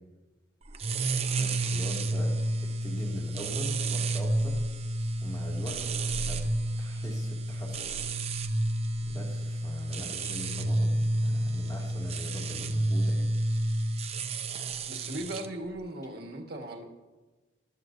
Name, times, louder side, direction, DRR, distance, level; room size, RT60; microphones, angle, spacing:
sound 1, 0.7-15.5, right 2 dB, 35° right, 0.6 m, -30 dB
voice 1, 1.3-2.3 2.8-4.6 5.2-5.8 6.1-6.4 6.8-8.0 9.0-13.3, equal, 20° left, -2 dB, 2.2 m, -41 dB
voice 2, 14.9-16.8, right 1 dB, 60° right, 2 dB, 1.5 m, -38 dB
14.0 x 12.0 x 2.6 m, 1.2 s
head